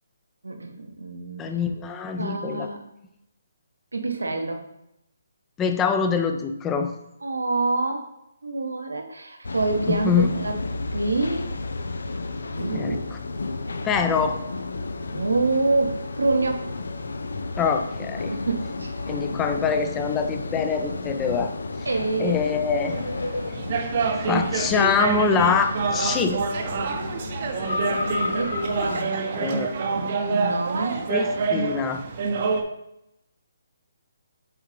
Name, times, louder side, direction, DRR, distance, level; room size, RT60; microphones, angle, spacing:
voice 1, 0.4-1.5 2.2-2.8 3.9-4.6 7.2-8.1 8.4-10.1 10.4-10.5 10.9-11.5 12.5-13.0 15.1-16.7 18.3-19.2 21.9-22.4 28.2-29.6 29.9-31.0, right 3 dB, 90° right, 4 dB, 1.0 m, -27 dB
voice 2, 1.4-2.7 5.6-6.9 9.9-10.3 12.7-13.2 13.8-14.4 17.6-18.3 19.1-21.5 22.2-23.0 24.3-26.4 29.4-29.7 31.1-32.0, left 6 dB, 15° left, 7 dB, 0.5 m, -24 dB
sound 1, 9.4-29.0, left 3 dB, 75° left, 0.5 m, -32 dB
sound 2, 22.9-32.6, right 4 dB, 45° right, 0.7 m, -27 dB
7.9 x 3.6 x 3.2 m, 0.82 s
hypercardioid pair, 150°, 0 cm